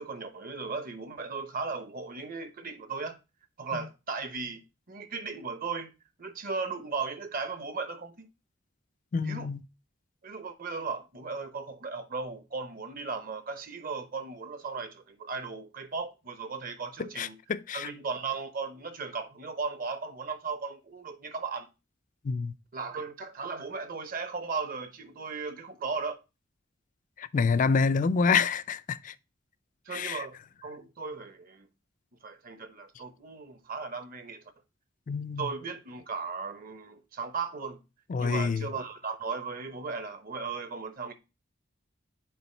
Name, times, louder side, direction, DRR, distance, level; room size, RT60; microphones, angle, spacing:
voice 1, 0.0-3.2 3.6-4.6 4.9-5.9 6.2-8.3 9.2-9.5 10.2-17.4 17.7-21.7 22.7-26.2 29.9-31.7 32.2-34.4 35.4-37.8 38.2-41.1, right 4 dB, 45° right, 0.9 m, -36 dB
voice 2, 9.1-9.6 17.0-17.9 22.2-22.5 27.2-29.1 29.9-30.3 35.1-35.5 38.1-38.7, left 5 dB, 40° left, 0.4 m, -27 dB
6.9 x 4.5 x 4.3 m
head